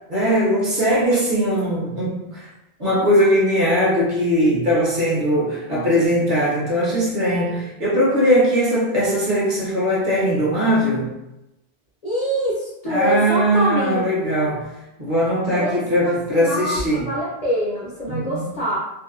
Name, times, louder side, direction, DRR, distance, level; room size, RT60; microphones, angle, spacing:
voice 1, 0.1-2.5 2.8-11.1 12.8-14.7 15.0-17.1 18.1-18.4, equal, 50° right, -6 dB, 0.9 m, -20 dB
voice 2, 5.7-6.3 12.0-14.1 14.4-14.6 15.5-16.1 16.4-18.8, equal, 45° left, -6 dB, 0.6 m, -25 dB
2.7 x 2.1 x 2.4 m, 0.91 s
omnidirectional pair, 1.1 m